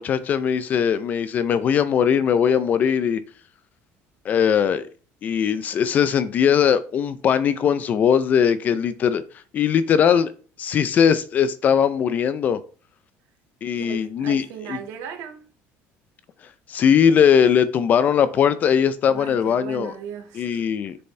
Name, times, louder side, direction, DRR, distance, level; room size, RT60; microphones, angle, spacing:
voice 1, 0.0-3.2 4.2-4.9 5.2-9.2 9.5-10.3 10.6-12.6 13.6-14.8 16.7-19.9 20.4-21.0, left 8 dB, 30° left, 0.4 m, -20 dB
voice 2, 13.7-15.5 19.1-20.7, right 8 dB, 75° right, 1.7 m, -37 dB
6.9 x 6.8 x 3.2 m
cardioid pair, 175°, 5 cm